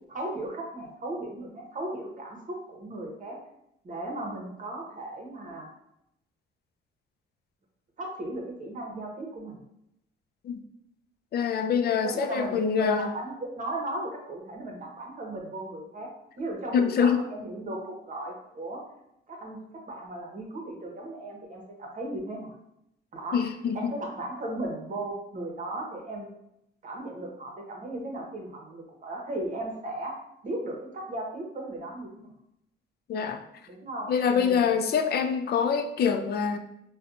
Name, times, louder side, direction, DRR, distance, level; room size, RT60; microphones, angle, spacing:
voice 1, 0.1-3.4 3.8-5.7 8.0-9.6 12.0-16.1 16.4-18.8 19.3-19.6 19.9-22.5 23.1-23.5 23.7-26.3 26.8-30.1 30.4-32.3 33.7-34.7, right 1 dB, 40° right, 0 dB, 1.0 m, -36 dB
voice 2, 11.3-13.1 16.7-17.3 23.3-23.9 33.1-33.4 34.1-36.6, left 6 dB, 55° left, 8 dB, 0.4 m, -25 dB
4.2 x 2.2 x 2.6 m, 0.81 s
cardioid pair, 90°, 20 cm